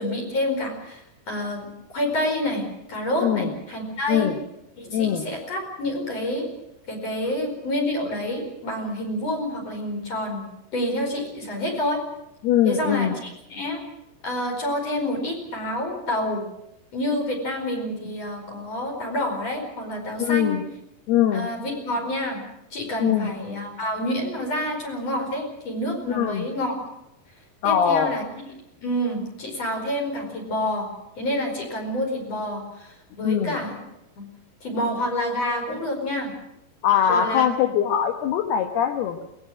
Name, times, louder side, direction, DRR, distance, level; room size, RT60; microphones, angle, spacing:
voice 1, 0.0-1.7 1.9-4.3 4.8-6.5 6.9-10.5 10.7-12.0 12.7-13.8 14.2-16.4 16.9-20.5 21.3-22.4 22.7-26.8 27.6-28.2 28.8-30.9 31.2-33.8 34.2-34.3 34.6-36.3 37.1-37.4, left 1 dB, 35° left, 1 dB, 5.5 m, -28 dB
voice 2, 3.2-3.5 4.1-4.4 4.9-5.3 12.4-13.2 20.2-20.6 21.1-21.5 23.0-23.3 26.1-26.5 27.6-28.2 33.2-33.6 36.8-39.2, left 9 dB, 70° left, 6 dB, 2.6 m, -22 dB
22.0 x 19.0 x 7.8 m, 0.86 s
omnidirectional pair, 5.7 m